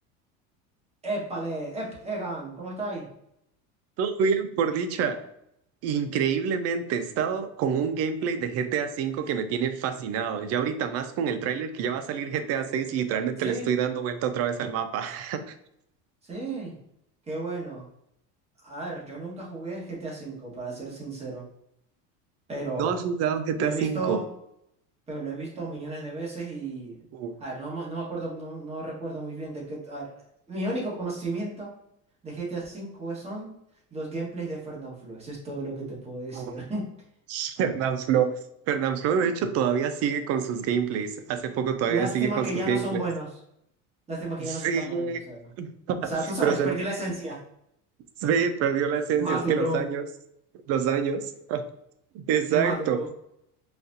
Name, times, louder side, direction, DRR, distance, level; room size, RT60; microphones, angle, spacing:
voice 1, 1.0-3.1 13.4-13.7 16.2-16.8 17.3-17.8 18.6-21.4 22.5-22.9 23.6-24.2 25.1-27.0 27.4-30.1 30.5-31.7 32.2-33.5 33.9-36.9 41.9-43.3 44.1-45.5 46.0-47.4 49.2-49.8 52.5-53.1, right 2 dB, 20° right, -4 dB, 1.3 m, -33 dB
voice 2, 4.0-5.3 5.8-15.5 22.8-24.2 27.1-27.3 36.3-36.5 37.3-38.4 38.7-43.0 44.5-45.2 45.6-46.1 46.4-46.8 48.2-50.0 50.7-51.6 52.1-53.0, right 7 dB, 45° right, 9 dB, 0.4 m, -27 dB
4.1 x 2.4 x 2.6 m, 0.76 s
cardioid pair, 130°, 34 cm